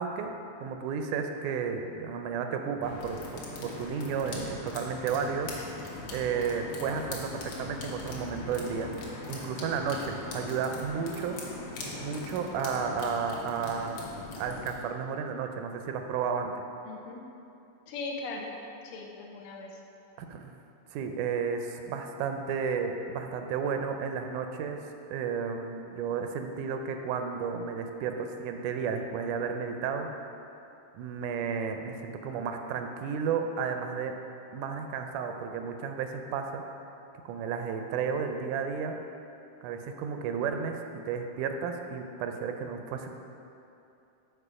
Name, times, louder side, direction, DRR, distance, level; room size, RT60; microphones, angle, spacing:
voice 1, 0.0-5.5 6.1-8.9 9.3-11.4 12.0-14.1 14.4-16.6 20.2-20.5 20.9-30.1 30.9-34.1 34.5-36.6 37.3-38.9 39.6-40.8 41.1-43.1, right 6 dB, 85° right, 5 dB, 2.0 m, -32 dB
sound 1, 2.8-14.7, left 2 dB, 65° left, 1.6 m, -40 dB
voice 2, 16.8-17.2 17.9-18.5 18.8-19.8, left 3 dB, 90° left, 0 dB, 1.2 m, -39 dB
6.8 x 4.5 x 4.9 m, 2.7 s
omnidirectional pair, 3.5 m